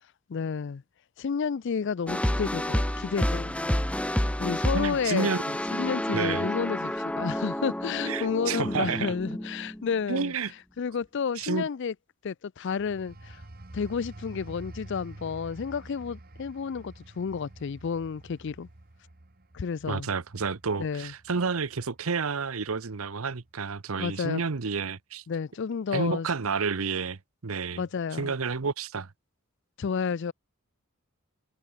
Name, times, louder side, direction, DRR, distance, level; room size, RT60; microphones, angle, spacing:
voice 1, 0.3-0.8 1.2-3.6 4.4-5.3 5.7-10.3 10.8-11.9 12.2-13.4 13.7-18.7 19.5-20.1 20.8-21.1 24.0-24.4 25.3-26.3 27.8-28.3 29.8-30.3, left 6 dB, 55° left, 0.4 m, -31 dB
sound 1, 2.1-10.2, left 1 dB, 5° left, 0.9 m, -30 dB
voice 2, 4.7-5.4 6.1-6.5 8.1-9.1 10.1-10.5 11.4-11.7 19.9-25.2 25.9-27.8 28.2-29.1, right 5 dB, 80° right, 0.9 m, -30 dB
sound 2, 12.7-23.0 23.5-23.7, right 1 dB, 45° right, 1.4 m, -48 dB
head